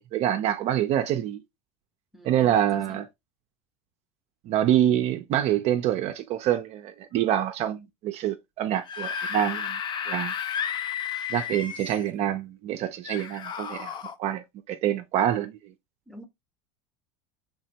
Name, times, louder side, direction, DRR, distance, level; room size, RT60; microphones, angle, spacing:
voice 1, 0.0-1.4 2.2-3.1 4.5-9.8 10.1-10.3 11.3-13.9 14.2-15.6, right 11 dB, 50° right, 0.4 m, -26 dB
voice 2, 2.1-3.0 16.1-16.3, left 1 dB, ahead, 0.7 m, -46 dB
Screaming / Screech, 8.7-12.1 13.0-14.1, left 7 dB, 35° left, 0.4 m, -32 dB
3.3 x 2.1 x 2.7 m
supercardioid pair, 105°, 14 cm